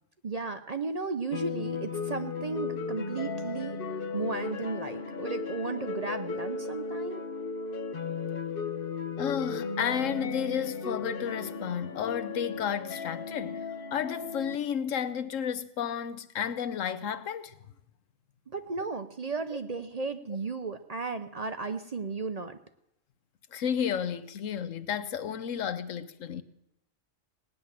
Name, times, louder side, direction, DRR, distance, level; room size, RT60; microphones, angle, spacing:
voice 1, 0.2-3.8 4.1-7.2 18.5-22.6, right 4 dB, 40° right, 0.6 m, -34 dB
sound 1, 1.3-14.6, left 5 dB, 50° left, 1.0 m, -35 dB
voice 2, 9.2-13.6 13.9-17.5 23.5-26.4, left 8 dB, 90° left, 1.2 m, -32 dB
17.5 x 9.9 x 7.4 m
omnidirectional pair, 1.3 m